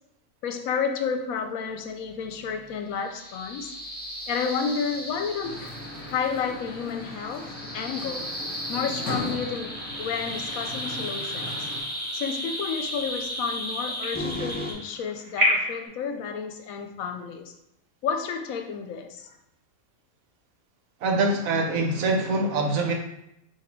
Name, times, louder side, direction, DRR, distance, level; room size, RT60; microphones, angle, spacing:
voice 1, 0.4-3.7 4.3-5.7 6.0-8.3 8.7-11.7 12.1-17.5 18.0-19.3, left 6 dB, 80° left, 5 dB, 1.0 m, -31 dB
sound 1, 3.0-14.7, equal, 15° left, 0.3 m, -35 dB
sound 2, 5.4-11.8, left 1 dB, 40° left, 1.2 m, -38 dB
sound 3, 10.6-15.9, equal, 50° right, 1.3 m, -32 dB
voice 2, 21.0-22.9, right 2 dB, 75° right, 2 dB, 1.1 m, -24 dB
4.1 x 2.7 x 4.4 m, 0.80 s
omnidirectional pair, 1.5 m